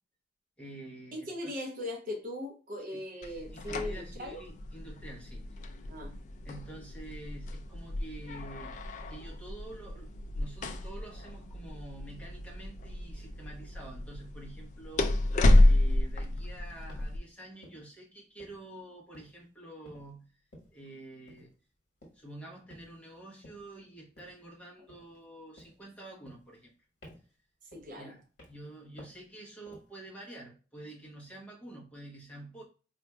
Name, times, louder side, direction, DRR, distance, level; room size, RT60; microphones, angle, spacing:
voice 1, 0.6-1.5 2.8-5.7 6.4-8.7 9.1-15.2 15.6-20.4 20.7-21.5 22.1-26.7 28.0-32.6, right 2 dB, 5° left, 0.9 m, -48 dB
voice 2, 1.1-4.4 5.9-6.1 27.7-28.1, left 1 dB, 45° right, 0.6 m, -39 dB
sound 1, 3.2-17.2, left 1 dB, 40° left, 0.3 m, -30 dB
sound 2, 15.3-15.6 16.2-16.4 16.9-17.2 17.6-18.0 18.4-18.8 19.1-19.5 19.8-20.1 20.5-20.8 21.3-21.5 22.0-22.3 22.7-23.1 23.4-23.7 24.2-24.5 24.9-25.3 25.6-25.9 26.3-26.7 27.0-27.4 27.7-28.0 28.4-28.7 29.0-29.3 29.7-30.0, equal, 55° left, 1.3 m, -54 dB
4.2 x 2.5 x 2.2 m
head